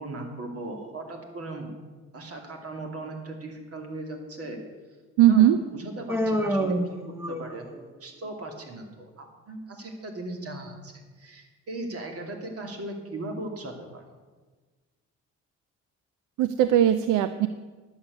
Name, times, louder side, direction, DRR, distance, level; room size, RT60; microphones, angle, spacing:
voice 1, 0.0-1.7 2.1-4.6 5.3-7.0 7.3-10.9 11.2-14.0, right 2 dB, 50° right, 3 dB, 2.6 m, -38 dB
voice 2, 5.2-5.6 16.4-17.5, right 11 dB, 90° right, 12 dB, 0.5 m, -19 dB
Human voice, 6.1-7.8, equal, 10° right, 1.2 m, -27 dB
11.0 x 7.3 x 8.1 m, 1.3 s
cardioid pair, 90°, 30 cm